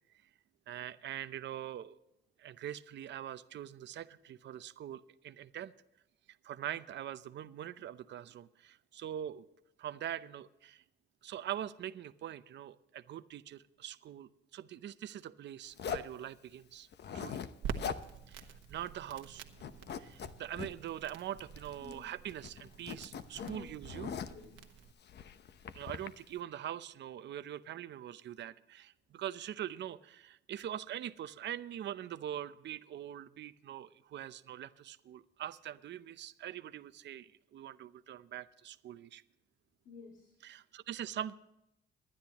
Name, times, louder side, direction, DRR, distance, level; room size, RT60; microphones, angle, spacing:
voice 1, 0.7-2.0 2.4-5.7 6.4-9.4 9.8-10.8 11.2-16.9 17.1-17.5 18.3-19.4 20.0-24.1 25.7-39.2 40.4-41.3, right 11 dB, 65° right, 12 dB, 0.7 m, -43 dB
Zipper (clothing), 15.8-16.2 16.9-17.5 17.8-18.1 18.4-18.5 18.9-19.3 19.6-20.7 21.4-22.0 22.3-24.5 25.1-26.1, left 7 dB, 60° left, 0.9 m, -41 dB
Crackle, 17.6-24.9, right 7 dB, 80° right, 1.3 m, -47 dB
voice 2, 21.8-22.1 23.4-24.7 39.8-40.3, left 5 dB, 80° left, 2 dB, 2.2 m, -52 dB
23.0 x 10.5 x 3.0 m, 0.84 s
cardioid pair, 90°, 20 cm